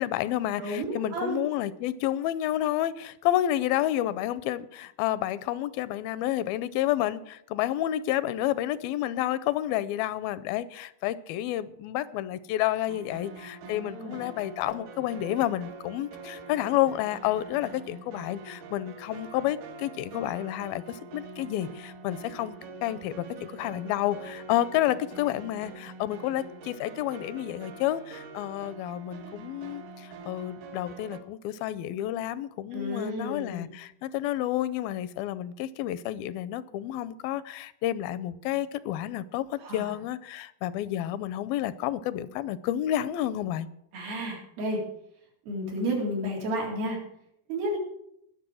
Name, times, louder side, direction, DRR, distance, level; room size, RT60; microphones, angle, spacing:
voice 1, 0.0-22.5 22.8-43.7, left 13 dB, 85° left, 16 dB, 2.4 m, -30 dB
voice 2, 0.6-1.4 13.6-14.2 32.7-33.7 39.6-39.9 43.9-44.8 45.5-47.0 47.5-47.8, equal, 85° right, -2 dB, 5.5 m, -32 dB
sound 1, 12.9-31.2, right 3 dB, 65° right, 2.6 m, -45 dB
20.0 x 6.7 x 6.2 m, 0.75 s
omnidirectional pair, 4.2 m